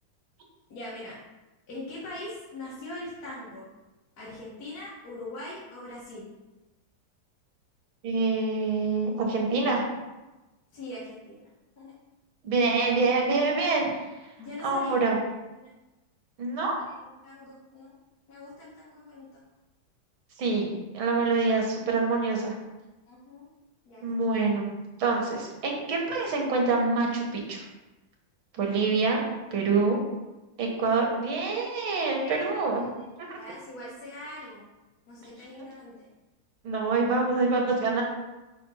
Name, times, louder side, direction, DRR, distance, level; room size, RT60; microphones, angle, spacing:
voice 1, 0.7-1.1 1.7-3.6 4.2-6.3 10.7-11.4 11.8-11.9 14.4-15.2 15.6-15.7 16.9-17.9 18.3-19.3 23.1-23.5 23.9-24.2 29.7-29.9 32.2-32.5 32.7-32.8 33.3-34.6 35.1-36.1, left 1 dB, 55° left, -8 dB, 1.9 m, -41 dB
voice 2, 8.0-9.9 12.4-14.0 14.6-15.2 16.4-16.7 20.4-22.5 24.0-24.7 25.0-27.6 28.5-29.2 29.5-30.0 30.6-32.8 33.2-33.4 36.6-38.0, right 3 dB, 90° right, 0 dB, 2.2 m, -26 dB
5.6 x 4.2 x 5.7 m, 1.1 s
omnidirectional pair, 2.2 m